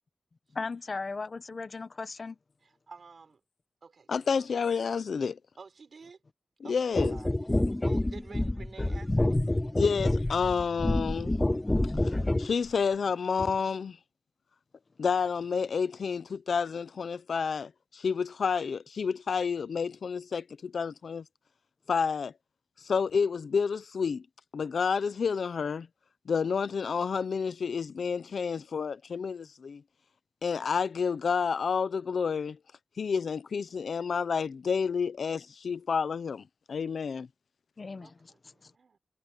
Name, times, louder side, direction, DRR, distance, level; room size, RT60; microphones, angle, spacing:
voice 1, 0.5-2.4 37.8-38.3 38.6-38.7, left 4 dB, 45° left, 1.0 m, -37 dB
voice 2, 2.6-3.4 3.8-4.5 5.6-6.2 6.6-10.0 38.0-39.0, right 4 dB, 65° right, 4.1 m, -51 dB
voice 3, 4.1-5.4 6.7-7.1 9.8-11.4 12.0-12.1 12.4-14.0 15.0-21.2 21.9-22.3 22.8-24.3 24.5-25.9 26.3-29.8 30.4-32.6 33.0-37.3, left 6 dB, 85° left, 0.8 m, -29 dB
sound 1, 6.9-12.5 13.4-13.5, left 1 dB, 15° left, 0.7 m, -28 dB
wide cardioid pair, 125°, 0 cm